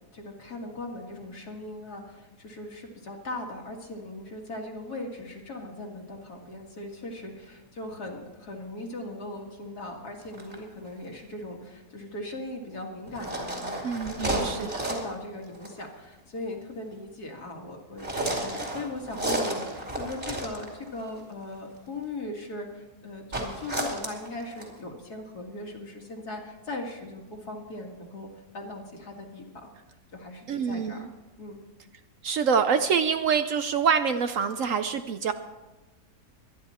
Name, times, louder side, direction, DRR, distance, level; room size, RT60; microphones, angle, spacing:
voice 1, 0.1-14.0 14.2-28.3 28.5-29.7 30.1-31.1 31.4-31.6, left 2 dB, 70° left, 1 dB, 2.5 m, -39 dB
sound 1, 10.2-10.5 13.1-15.2 15.5-15.8 18.0-21.0 23.3-24.8, right 1 dB, 30° right, 2.8 m, -32 dB
voice 2, 13.8-14.7 30.5-31.1 32.2-35.3, right 6 dB, 65° right, 9 dB, 0.9 m, -26 dB
23.0 x 10.0 x 4.3 m, 1.1 s
omnidirectional pair, 1.7 m